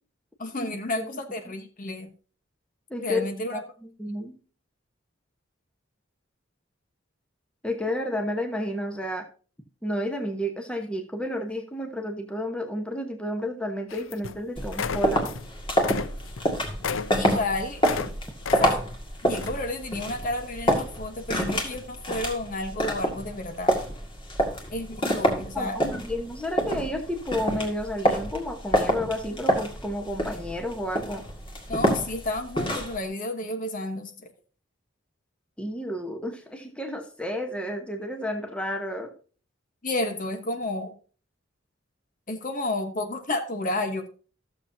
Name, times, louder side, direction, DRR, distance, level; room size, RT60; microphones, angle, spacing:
voice 1, 0.4-2.1 3.0-3.6 17.2-17.8 18.6-18.8 19.2-23.7 24.7-25.8 31.7-34.1 39.8-40.9 42.3-44.1, left 2 dB, 40° left, 6 dB, 1.1 m, -31 dB
voice 2, 2.9-3.3 3.5-4.4 7.6-9.3 9.8-15.3 25.5-31.2 35.6-39.1, left 1 dB, 5° left, 4 dB, 1.1 m, -31 dB
sound 1, 13.9-14.4 14.7-15.5 15.7-18.1 18.4-19.0 19.4-19.6, left 6 dB, 75° left, 0.5 m, -33 dB
sound 2, 14.6-33.0, equal, 25° left, 2.0 m, -27 dB
14.5 x 6.9 x 2.7 m, 0.38 s
head